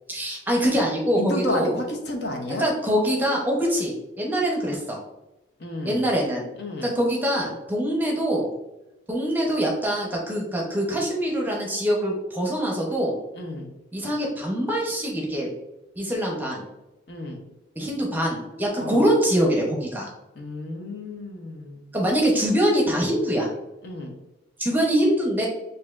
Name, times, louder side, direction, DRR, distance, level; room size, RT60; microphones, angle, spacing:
voice 1, 0.1-1.7 2.5-5.0 5.8-6.5 6.8-8.5 9.1-13.1 13.9-15.5 16.0-16.6 17.8-20.1 21.9-23.5 24.6-25.5, equal, 10° right, -2 dB, 0.8 m, -24 dB
voice 2, 1.2-2.7 5.6-6.1 6.6-6.9 13.3-13.7 17.1-17.4 18.8-19.0 20.3-21.9 23.8-24.2, left 1 dB, 55° left, 2 dB, 0.8 m, -31 dB
6.5 x 2.7 x 2.5 m, 0.96 s
head